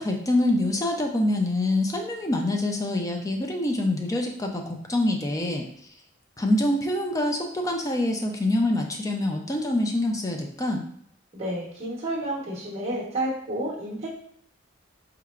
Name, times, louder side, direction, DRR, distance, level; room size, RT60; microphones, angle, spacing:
voice 1, 0.0-5.7 6.4-10.8, left 1 dB, 15° left, 2 dB, 0.4 m, -25 dB
voice 2, 11.3-14.1, right 1 dB, 30° right, -6 dB, 1.0 m, -30 dB
4.5 x 3.2 x 2.4 m, 0.65 s
head